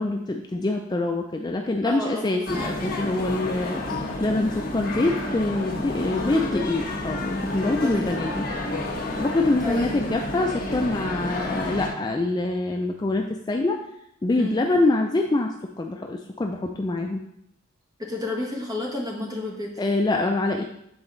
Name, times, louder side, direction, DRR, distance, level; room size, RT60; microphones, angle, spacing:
voice 1, 0.0-3.8 4.2-8.5 9.2-13.8 14.2-15.5 15.8-17.2 19.8-20.6, left 2 dB, 20° left, 2 dB, 0.3 m, -25 dB
voice 2, 1.8-2.8 6.0-6.7 7.6-8.2 9.6-10.1 14.4-14.6 18.0-19.7, left 2 dB, 20° right, -1 dB, 1.3 m, -32 dB
sound 1, 2.5-11.9, left 1 dB, 45° left, 1.2 m, -30 dB
7.8 x 4.0 x 3.8 m, 0.77 s
head